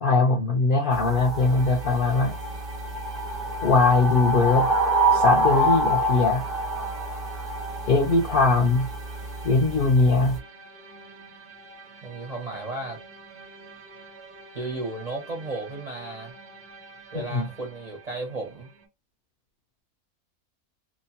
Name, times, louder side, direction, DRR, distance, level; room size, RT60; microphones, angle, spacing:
voice 1, 0.0-2.4 3.6-4.7 5.1-6.4 7.9-8.9 9.4-10.4 17.1-17.5, left 3 dB, 65° left, 0.5 m, -21 dB
sound 1, 0.9-10.4, right 1 dB, ahead, 0.5 m, -27 dB
sound 2, 1.4-18.9, right 3 dB, 90° right, 1.3 m, -47 dB
voice 2, 12.0-13.0 14.5-16.4 17.1-18.7, right 2 dB, 40° right, 0.5 m, -34 dB
2.8 x 2.2 x 2.7 m
omnidirectional pair, 1.5 m